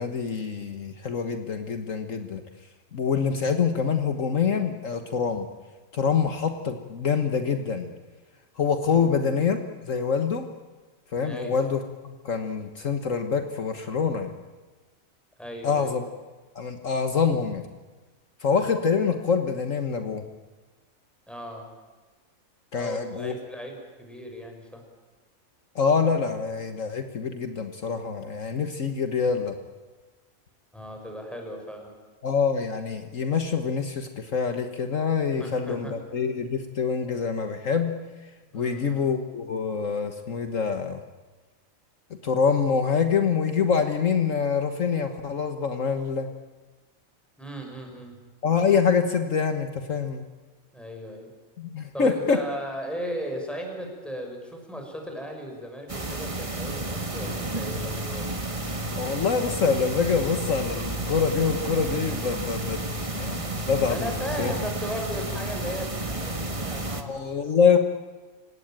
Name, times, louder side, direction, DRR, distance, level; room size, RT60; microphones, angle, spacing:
voice 1, 0.0-2.4 2.9-5.5 5.9-7.9 8.6-9.6 9.9-10.5 11.1-14.3 15.6-16.0 16.5-17.7 18.4-20.2 22.7-23.3 25.7-29.5 32.2-37.9 38.5-41.0 42.2-46.3 48.4-50.2 51.6-52.4 58.9-62.8 63.1-64.5 67.1-67.8, left 6 dB, 65° left, 7 dB, 1.7 m, -25 dB
voice 2, 8.9-9.5 11.2-11.5 15.4-16.0 21.3-21.6 22.7-24.8 30.7-31.9 35.3-35.9 38.5-39.2 47.4-48.2 50.7-51.3 51.9-58.3 63.8-67.8, equal, ahead, 2 dB, 6.0 m, -37 dB
sound 1, 55.9-67.0, right 2 dB, 25° right, 1.7 m, -31 dB
29.0 x 17.5 x 9.0 m, 1.3 s
omnidirectional pair, 1.5 m